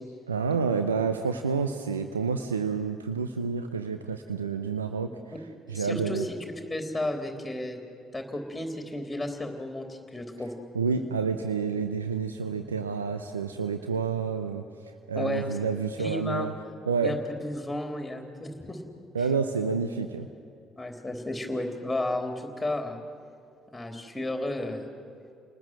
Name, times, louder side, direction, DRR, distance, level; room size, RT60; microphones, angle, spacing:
voice 1, 0.3-5.1 5.7-6.3 10.7-16.5 16.8-17.1 19.1-20.3, right 5 dB, 90° right, 7 dB, 0.7 m, -29 dB
voice 2, 5.7-6.4 6.7-7.8 8.1-10.5 15.1-15.6 16.0-16.5 17.0-18.8 20.8-23.0 23.7-24.9, left 1 dB, 10° left, 4 dB, 3.7 m, -33 dB
29.5 x 19.5 x 7.8 m, 2.5 s
hypercardioid pair, 50°, 0 cm